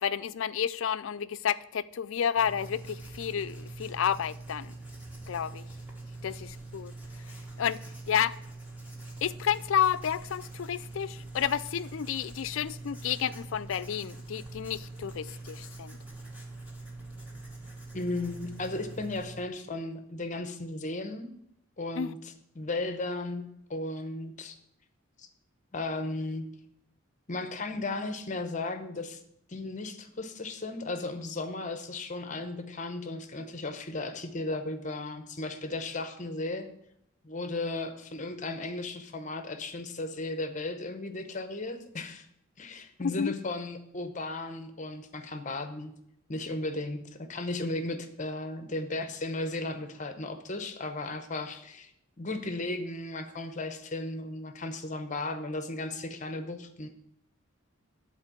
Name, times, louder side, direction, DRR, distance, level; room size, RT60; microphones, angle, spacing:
voice 1, 0.0-4.8 5.3-5.6 6.2-6.9 7.6-7.8 8.1-8.3 9.2-16.0 22.0-22.1 43.2-43.3, left 8 dB, 65° left, 15 dB, 0.4 m, -30 dB
Writing, 2.4-19.4, right 2 dB, 10° right, 1.5 m, -44 dB
voice 2, 17.9-21.3 21.8-24.5 25.2-25.3 25.7-26.4 27.3-29.2 29.5-36.7 37.2-42.3 42.6-45.9 46.3-51.9 52.2-56.9, left 2 dB, 35° left, 8 dB, 0.8 m, -35 dB
9.7 x 4.5 x 7.2 m, 0.76 s
head